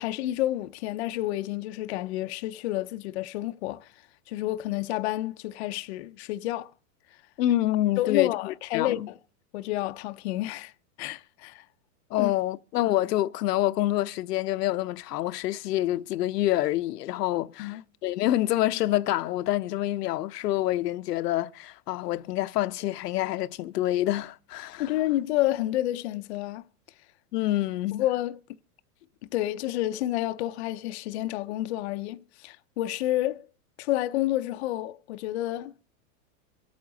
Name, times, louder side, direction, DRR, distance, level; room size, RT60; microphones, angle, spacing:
voice 1, 0.0-3.9 4.3-6.7 8.0-9.2 9.5-10.7 11.0-11.6 12.2-12.3 17.6-17.8 24.8-26.6 27.9-28.4 29.3-33.5 33.8-35.7, left 15 dB, 45° left, 0.5 m, -29 dB
voice 2, 7.4-9.1 12.1-24.9 27.3-28.0, left 14 dB, 80° left, 0.7 m, -27 dB
24.0 x 8.7 x 3.7 m
supercardioid pair, 165°, 47 cm